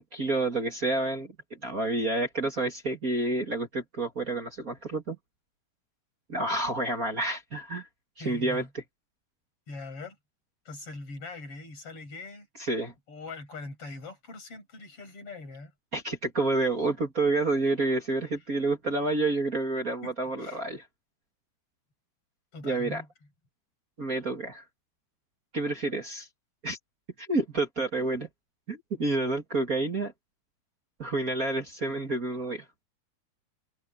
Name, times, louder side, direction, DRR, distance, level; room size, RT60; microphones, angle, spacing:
voice 1, 0.0-5.2 6.3-7.9 8.2-8.8 12.6-12.9 15.9-20.8 22.6-23.0 24.0-24.6 25.5-26.3 26.6-26.8 27.2-28.3 28.7-30.1 31.0-32.7, right 2 dB, 30° right, 1.8 m, -29 dB
voice 2, 8.2-8.7 9.7-10.1 10.7-12.5 13.1-15.7 20.0-20.1 20.4-20.6 22.5-23.1, left 3 dB, 35° left, 8.1 m, -42 dB
omnidirectional pair, 4.5 m